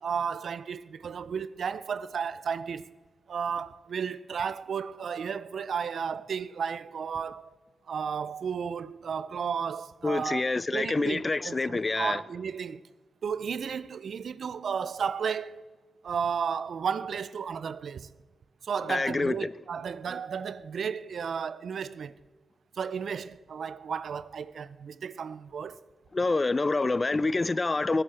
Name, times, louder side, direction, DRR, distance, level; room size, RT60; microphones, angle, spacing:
voice 1, 0.0-2.9 3.3-7.6 7.9-12.8 13.2-15.6 16.0-18.1 18.6-22.1 22.8-25.8, right 6 dB, 70° right, 0.4 m, -33 dB
voice 2, 10.0-12.2 18.9-19.5 26.1-28.0, left 3 dB, 35° left, 0.4 m, -27 dB
19.0 x 9.8 x 4.4 m
supercardioid pair, 45°, 0 cm